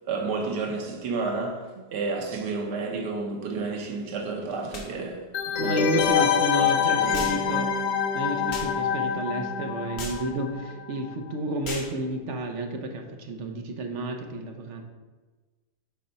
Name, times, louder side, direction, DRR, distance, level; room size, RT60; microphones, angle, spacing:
voice 1, 0.1-6.3 6.9-7.4, right 4 dB, 90° right, 1.6 m, -31 dB
sound 1, 4.7-4.9 6.0-6.1 7.1-7.4 8.5-8.7 10.0-10.2 11.6-11.9, left 3 dB, 60° left, 1.6 m, -36 dB
sound 2, 5.3-10.8 11.1-11.2, left 8 dB, 85° left, 1.2 m, -26 dB
voice 2, 5.6-7.7 8.1-14.8, right 1 dB, 55° right, 1.0 m, -31 dB
6.8 x 4.4 x 5.3 m
omnidirectional pair, 1.8 m